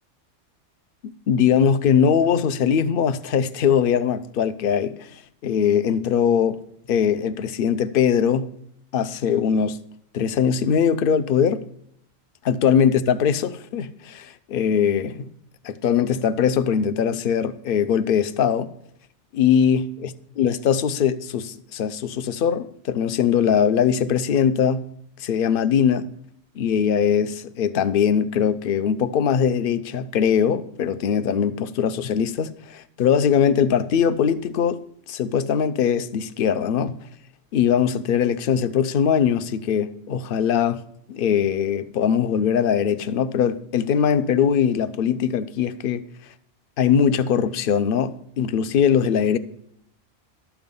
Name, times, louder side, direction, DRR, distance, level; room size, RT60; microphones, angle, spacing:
voice 1, 1.3-6.6 6.9-8.5 8.9-9.8 10.1-11.6 12.4-15.3 15.6-18.7 19.3-19.8 20.4-24.8 25.2-26.1 26.6-34.8 35.1-37.0 37.5-40.8 41.1-46.0 46.8-49.4, left 8 dB, 55° left, 0.7 m, -21 dB
12.0 x 7.1 x 5.4 m
omnidirectional pair, 1.2 m